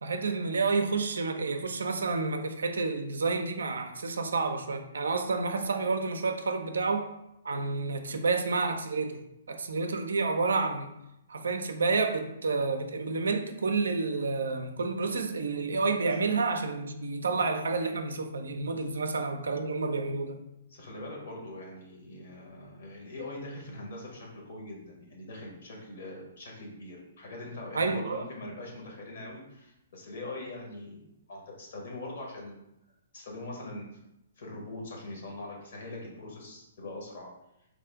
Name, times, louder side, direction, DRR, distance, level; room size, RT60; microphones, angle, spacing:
voice 1, 0.0-7.1 7.4-9.2 9.5-10.9 11.3-20.4 27.7-28.2, right 4 dB, 65° right, 6 dB, 0.4 m, -29 dB
voice 2, 20.7-32.6 33.1-33.9 34.4-37.3, left 2 dB, 55° left, -1 dB, 1.1 m, -42 dB
3.4 x 2.4 x 3.5 m, 0.84 s
figure-of-eight pair, 120°, 0 cm